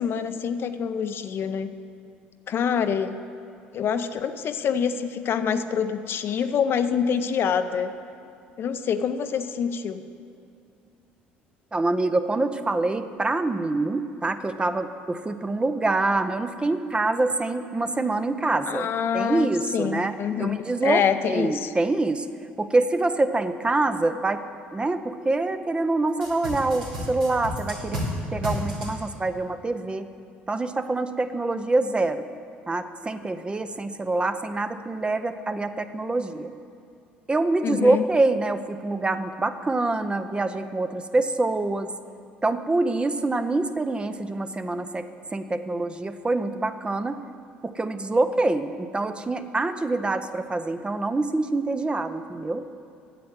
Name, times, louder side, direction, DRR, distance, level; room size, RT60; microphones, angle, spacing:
voice 1, 0.0-1.7 2.5-3.2 3.7-7.9 8.6-10.0 18.7-21.7 37.6-38.0, left 7 dB, 50° left, 9 dB, 0.6 m, -26 dB
voice 2, 11.7-18.9 19.1-20.1 20.4-22.3 22.6-24.4 24.7-28.0 28.3-30.1 30.5-32.3 32.7-36.5 37.3-41.9 42.4-45.1 45.3-47.2 47.6-52.6, right 2 dB, 20° right, 10 dB, 0.6 m, -25 dB
sound 1, 26.2-28.1 28.4-28.9, equal, 90° right, 2.5 m, -31 dB
9.3 x 7.7 x 8.0 m, 2.5 s
hypercardioid pair, 60°, 5 cm